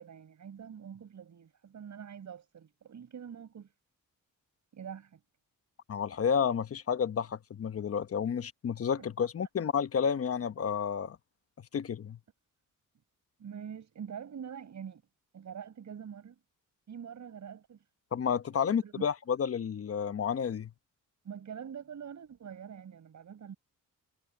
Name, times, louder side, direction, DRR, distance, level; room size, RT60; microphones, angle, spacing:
voice 1, 0.0-3.7 4.7-5.2 9.0-9.1 13.4-15.0 15.3-16.4 16.9-17.8 18.8-19.1 21.2-23.5, right 8 dB, 55° right, 6.0 m, -45 dB
voice 2, 5.9-11.2 11.7-12.2 18.1-20.7, left 7 dB, 45° left, 1.0 m, -31 dB
cardioid pair, 115°, 33 cm